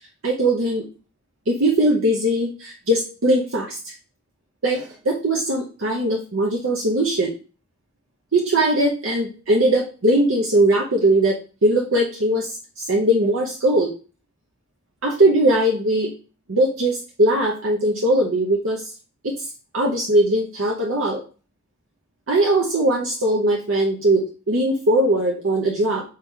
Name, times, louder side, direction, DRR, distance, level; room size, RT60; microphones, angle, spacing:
voice 1, 0.2-0.8 1.5-3.9 4.6-7.3 8.3-13.9 15.0-16.1 16.5-18.8 19.2-19.5 19.7-21.2 22.3-26.0, right 1 dB, 70° right, -2 dB, 0.8 m, -20 dB
4.6 x 2.9 x 3.6 m, 0.35 s
head